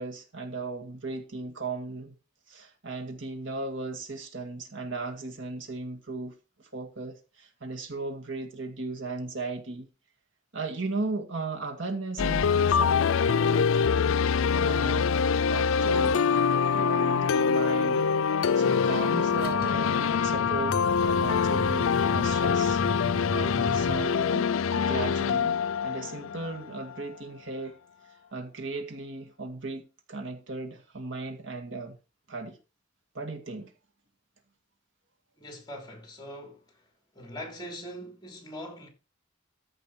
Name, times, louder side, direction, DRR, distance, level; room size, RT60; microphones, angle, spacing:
voice 1, 0.0-2.1 2.5-9.9 10.5-14.1 14.5-15.1 15.5-16.3 16.7-18.1 18.6-22.8 23.3-27.8 28.3-31.9 32.3-32.6 33.1-33.7, right 3 dB, 65° right, 1.9 m, -36 dB
sound 1, 12.2-27.0, left 6 dB, 80° left, 0.4 m, -25 dB
sound 2, 18.8-24.0, left 2 dB, 50° left, 1.4 m, -36 dB
voice 2, 35.4-36.6 37.1-38.9, equal, 20° left, 3.3 m, -41 dB
14.0 x 5.2 x 5.9 m
head